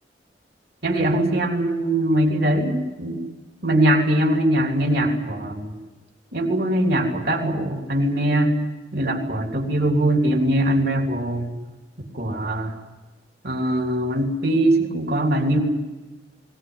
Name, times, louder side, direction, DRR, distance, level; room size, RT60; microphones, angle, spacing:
voice 1, 0.8-3.2 3.6-5.7 6.3-8.5 8.9-11.5 12.0-12.7 13.4-15.6, right 1 dB, 60° right, 1 dB, 3.2 m, -21 dB
20.0 x 19.5 x 9.6 m, 1.2 s
head